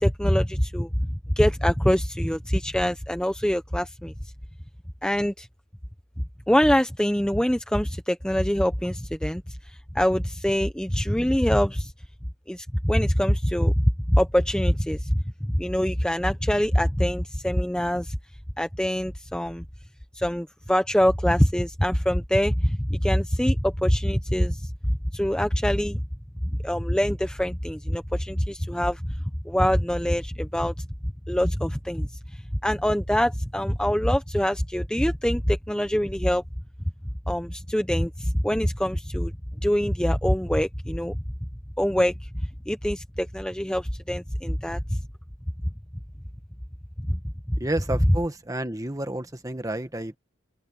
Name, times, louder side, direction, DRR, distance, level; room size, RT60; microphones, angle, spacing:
voice 1, 0.0-0.9 1.4-4.1 5.0-5.5 6.5-9.4 9.9-11.9 12.5-15.2 15.5-18.2 18.6-19.6 20.2-24.7 25.1-26.0 26.6-29.1 29.4-30.8 31.3-32.1 32.6-36.4 37.3-39.3 39.6-41.2 41.8-42.1 42.7-45.0 47.1-47.2 47.5-47.6, equal, 5° left, 0.9 m, -24 dB
voice 2, 47.6-50.2, right 1 dB, 15° right, 1.4 m, -30 dB
open air
head